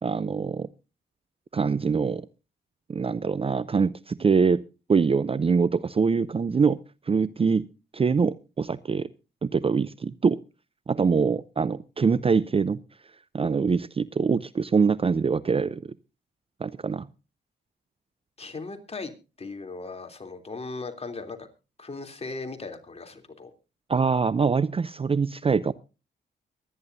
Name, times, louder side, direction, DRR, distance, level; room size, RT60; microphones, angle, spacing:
voice 1, 0.0-0.7 1.5-2.3 2.9-4.6 4.9-6.8 7.1-7.6 7.9-9.1 9.4-10.4 10.9-12.8 13.3-15.9 16.6-17.1 23.9-25.7, right 5 dB, 30° right, 0.5 m, -24 dB
voice 2, 18.4-19.1 19.4-21.5 21.8-23.5, left 3 dB, 35° left, 3.2 m, -37 dB
23.5 x 10.5 x 2.7 m
cardioid pair, 75°, 19 cm